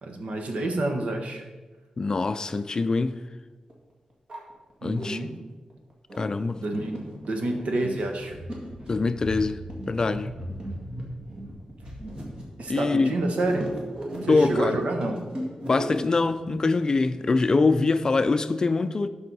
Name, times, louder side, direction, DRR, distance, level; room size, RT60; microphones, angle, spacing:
voice 1, 0.0-1.4 4.8-5.3 6.6-7.0 7.3-8.4 12.6-13.7 14.2-15.2, right 2 dB, 75° right, 1.2 m, -28 dB
voice 2, 2.0-3.2 4.8-5.2 6.2-6.6 8.9-9.6 9.9-10.3 12.7-13.1 14.3-14.8 15.6-19.1, left 3 dB, 35° left, 0.4 m, -24 dB
sound 1, 3.7-3.8 4.1-5.1 5.7-16.6, right 1 dB, 40° right, 2.0 m, -37 dB
12.5 x 5.4 x 4.1 m
wide cardioid pair, 160°, 2 cm